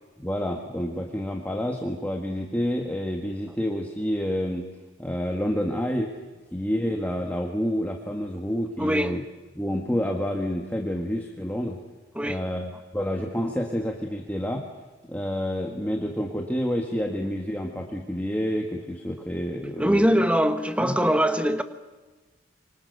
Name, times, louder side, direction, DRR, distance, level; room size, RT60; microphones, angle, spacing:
voice 1, 0.2-4.6 5.0-6.1 6.5-9.2 9.5-11.8 12.2-14.6 15.1-20.2 20.8-20.9, equal, 10° left, 1.7 m, -28 dB
voice 2, 8.8-9.2 12.1-12.4 19.8-21.6, equal, 5° right, 1.2 m, -22 dB
25.5 x 24.5 x 6.8 m
head